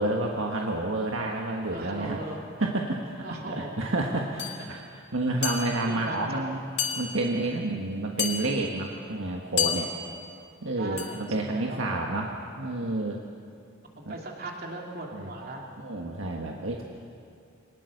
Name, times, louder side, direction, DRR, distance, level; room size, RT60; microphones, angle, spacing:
voice 1, 0.0-2.2 2.6-4.8 5.1-6.6 7.0-9.9 10.6-12.3 12.6-13.2 14.0-14.1 15.1-15.3 15.8-16.8, right 2 dB, 75° right, 0 dB, 1.6 m, -29 dB
voice 2, 1.7-2.4 3.2-3.8 5.8-6.4 10.8-12.0 14.0-15.6, right 2 dB, 50° right, 0 dB, 3.0 m, -38 dB
sound 1, 4.4-4.6 5.4-6.0 6.8-7.4 8.2-8.8 9.6-10.2 11.0-11.3, left 8 dB, 60° left, 2.6 m, -31 dB
23.0 x 19.5 x 6.6 m, 2.4 s
head